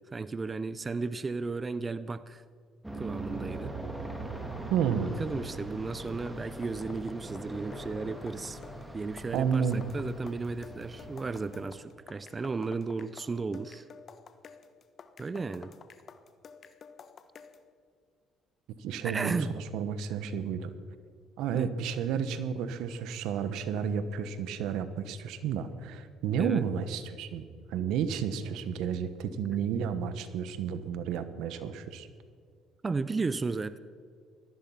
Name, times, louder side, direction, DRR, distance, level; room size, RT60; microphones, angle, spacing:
voice 1, 0.1-2.4 3.0-3.7 5.0-8.6 8.9-13.9 15.2-15.7 19.0-19.5 21.5-21.7 26.4-26.6 32.8-33.8, right 4 dB, 30° right, 15 dB, 0.6 m, -34 dB
Aircraft, 2.8-11.9, right 2 dB, 10° right, 2.8 m, -41 dB
voice 2, 4.7-5.2 9.3-9.8 18.8-20.7 21.4-27.4 27.7-32.1, right 7 dB, 80° right, 12 dB, 1.2 m, -31 dB
sound 1, 6.1-17.7, left 6 dB, 45° left, 1.2 m, -51 dB
17.5 x 13.5 x 5.7 m, 2.1 s
supercardioid pair, 85°, 0 cm